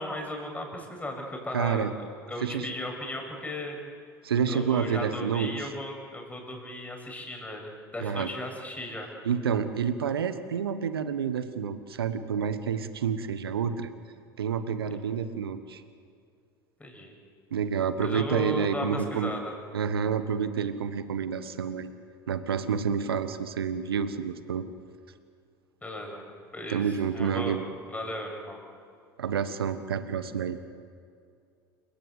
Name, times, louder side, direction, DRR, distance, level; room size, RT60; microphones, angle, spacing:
voice 1, 0.0-1.9 2.3-3.8 4.5-9.1 16.8-17.1 18.0-19.5 25.8-26.2 26.5-27.6 27.9-28.6, left 1 dB, 10° left, 2 dB, 7.4 m, -36 dB
voice 2, 1.5-1.9 2.4-2.7 4.2-5.7 8.0-8.3 9.2-13.9 14.4-15.8 17.5-19.3 19.7-21.9 22.3-24.6 26.7-27.6 29.2-30.6, right 7 dB, 80° right, 11 dB, 1.4 m, -29 dB
29.5 x 17.5 x 8.3 m, 2.4 s
figure-of-eight pair, 80°, 12 cm